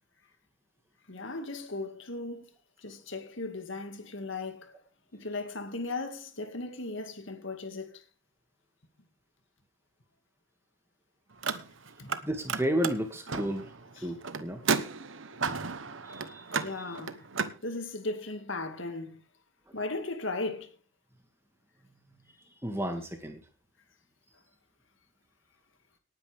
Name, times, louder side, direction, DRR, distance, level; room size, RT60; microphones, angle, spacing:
voice 1, 1.1-2.5 2.8-4.8 5.1-8.0 12.0-12.1 14.0-14.1 16.6-17.3 17.6-19.2 19.7-20.8, left 2 dB, 70° left, 2.2 m, -37 dB
Car, 11.3-12.2 12.5-17.6, right 5 dB, 70° right, 1.1 m, -33 dB
voice 2, 12.2-13.7 14.0-14.6 16.1-16.6 22.6-23.4, equal, 10° right, 2.1 m, -32 dB
18.5 x 9.8 x 3.5 m
head